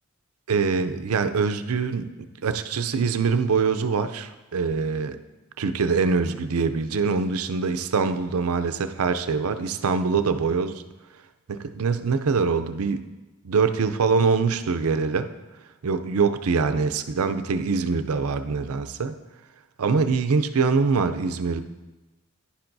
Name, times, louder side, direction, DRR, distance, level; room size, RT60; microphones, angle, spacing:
voice 1, 0.5-2.1 2.4-5.2 5.6-10.8 11.5-13.0 13.4-15.3 15.8-19.1 19.8-21.6, right 5 dB, 75° right, 10 dB, 0.5 m, -24 dB
10.5 x 10.5 x 2.6 m, 1.1 s
head